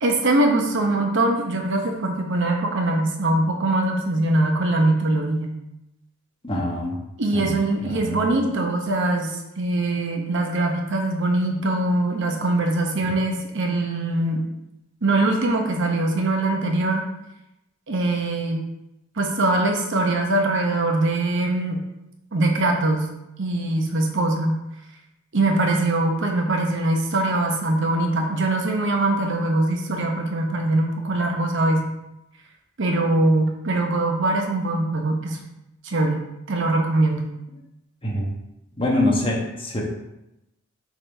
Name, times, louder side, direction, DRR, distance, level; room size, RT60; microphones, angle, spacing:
voice 1, 0.0-5.5 7.2-14.5 15.0-17.1 17.9-18.6 19.2-21.8 22.3-23.1 23.4-24.6 25.3-31.9 32.8-35.4 35.8-36.2 36.5-37.3, right 2 dB, 60° right, 2 dB, 0.9 m, -22 dB
voice 2, 6.4-7.0 7.3-7.5 7.8-8.3 38.0-38.3 38.8-39.8, left 1 dB, 25° left, -2 dB, 1.3 m, -24 dB
7.3 x 3.9 x 3.4 m, 0.89 s
head